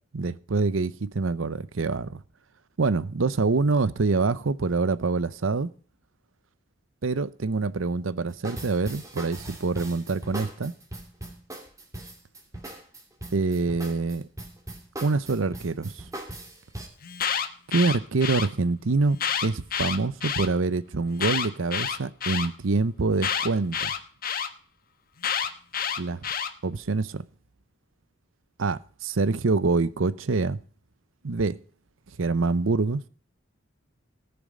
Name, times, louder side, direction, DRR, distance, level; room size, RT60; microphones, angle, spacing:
voice 1, 0.1-2.2 2.8-5.7 7.0-10.7 13.3-14.2 15.0-16.0 17.7-19.2 19.4-23.9 26.0-26.3 26.6-27.2 28.6-30.6 31.2-31.6 32.2-33.0, right 3 dB, 85° right, 0.7 m, -25 dB
sound 1, 8.3-16.9, right 1 dB, 15° right, 2.7 m, -39 dB
Alarm, 17.0-18.5 19.1-20.5 21.1-22.5 23.2-24.5 25.2-26.5, left 8 dB, 50° left, 1.1 m, -28 dB
17.5 x 7.0 x 5.0 m
head